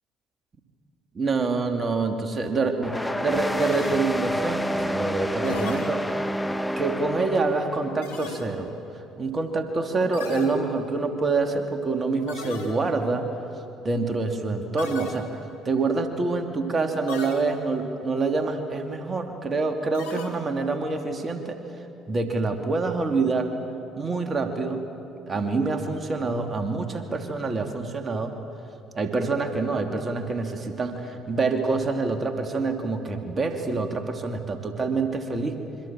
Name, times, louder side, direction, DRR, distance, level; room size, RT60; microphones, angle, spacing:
voice 1, 1.1-6.2 6.8-8.7 9.2-13.3 13.8-21.6 22.1-23.5 24.0-24.8 25.3-28.4 28.9-35.6, right 3 dB, 35° right, 4 dB, 2.9 m, -26 dB
sound 1, 2.8-7.9, equal, 10° left, 1.2 m, -28 dB
sound 2, 3.6-4.5 5.4-6.4 8.0-8.9 10.1-11.1 12.3-13.1 14.8-15.7 17.1-17.9 19.9-20.8, left 5 dB, 85° left, 2.3 m, -38 dB
27.5 x 24.5 x 7.6 m, 2.8 s
hypercardioid pair, 55°, 0 cm